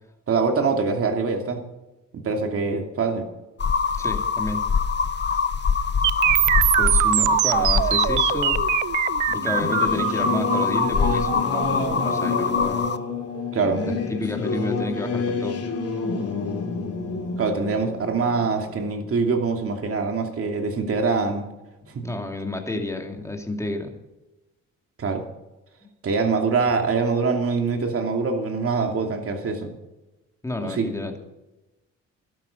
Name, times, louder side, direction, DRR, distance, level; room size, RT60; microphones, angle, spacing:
voice 1, 0.3-1.6 2.2-3.3 13.5-13.8 17.4-21.4 21.9-22.0 25.0-25.2 26.0-29.7 30.6-30.9, right 4 dB, 50° right, 4 dB, 2.6 m, -24 dB
sound 1, 3.6-13.0, left 6 dB, 35° left, 1.0 m, -24 dB
voice 2, 4.0-4.6 6.2-6.3 6.8-8.6 9.3-12.8 13.9-15.6 22.0-23.9 30.4-31.2, left 2 dB, 10° left, 3 dB, 2.4 m, -30 dB
sound 2, 6.0-14.0, right 15 dB, 75° right, 0.5 m, -23 dB
Singing / Musical instrument, 9.3-19.4, left 4 dB, 50° left, 2.7 m, -29 dB
12.5 x 12.5 x 5.3 m, 1.0 s
cardioid pair, 90°, 30 cm